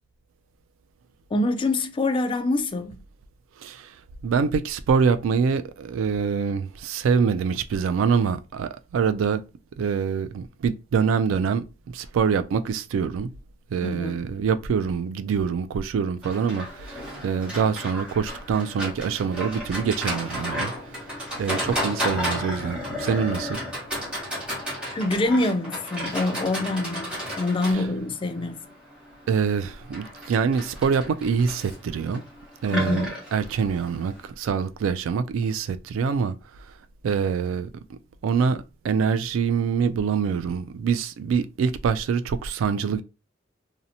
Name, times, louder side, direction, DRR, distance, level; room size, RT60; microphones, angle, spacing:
voice 1, 1.3-2.9 13.8-14.2 24.9-28.7 32.7-33.1, left 2 dB, 25° left, 0.3 m, -25 dB
voice 2, 3.6-9.4 9.8-13.3 13.7-23.6 27.7-27.9 29.3-32.2 32.6-36.7 37.0-43.0, right 6 dB, 85° right, 0.3 m, -25 dB
Livestock farm animals working animals, 16.2-34.3, equal, 5° right, 1.1 m, -33 dB
2.7 x 2.1 x 2.6 m
head